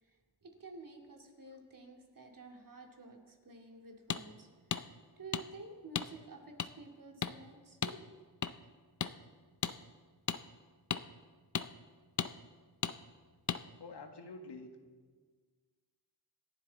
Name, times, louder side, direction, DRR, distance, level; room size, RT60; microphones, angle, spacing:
voice 1, 0.0-4.5 5.2-8.2, right 3 dB, 55° right, 1 dB, 2.4 m, -51 dB
sound 1, 4.1-4.2 4.7-4.8 5.3-5.4 5.9-6.1 6.6-6.7 7.2-7.3 7.8-8.0 8.4-8.5 9.0-9.1 9.6-9.7 10.3-10.4 10.9-11.0 11.5-11.7 12.2-12.3 12.8-12.9 13.5-13.6, left 7 dB, 45° left, 0.5 m, -34 dB
voice 2, 13.8-14.7, left 3 dB, 90° left, 5 dB, 1.7 m, -47 dB
27.0 x 11.0 x 4.0 m, 1.5 s
wide cardioid pair, 135°, 40 cm